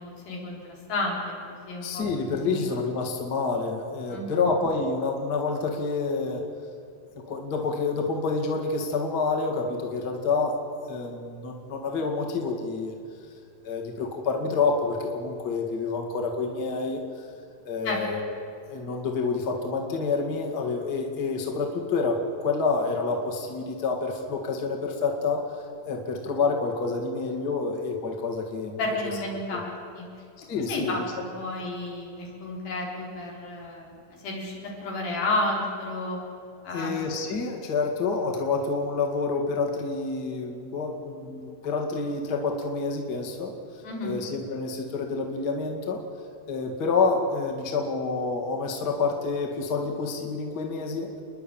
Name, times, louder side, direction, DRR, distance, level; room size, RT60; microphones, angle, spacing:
voice 1, 0.0-1.4 1.6-2.1 2.4-2.6 4.1-4.5 17.8-18.0 28.8-30.1 30.7-33.9 34.2-36.2 36.6-37.1 43.8-44.2, left 2 dB, 80° left, -2 dB, 5.8 m, -31 dB
voice 2, 1.8-6.4 7.2-10.6 10.9-13.0 13.6-17.2 17.6-18.4 18.7-28.8 29.5-29.6 30.4-31.1 36.7-43.5 44.0-46.0 46.5-51.1, left 4 dB, 35° left, 1 dB, 2.2 m, -28 dB
29.5 x 10.5 x 9.0 m, 2.4 s
omnidirectional pair, 4.1 m